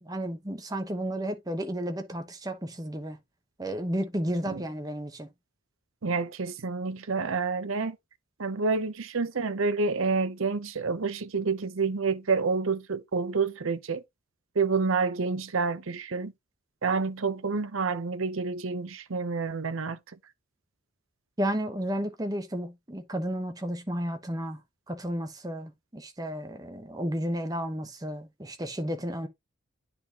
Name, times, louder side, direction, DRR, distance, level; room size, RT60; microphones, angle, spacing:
voice 1, 0.0-3.2 3.6-5.3 21.4-24.6 24.9-29.3, equal, 15° right, 1.0 m, -32 dB
voice 2, 6.0-8.0 8.4-14.0 14.6-16.3 16.8-20.0, right 4 dB, 65° right, 0.7 m, -28 dB
9.8 x 4.3 x 2.9 m
head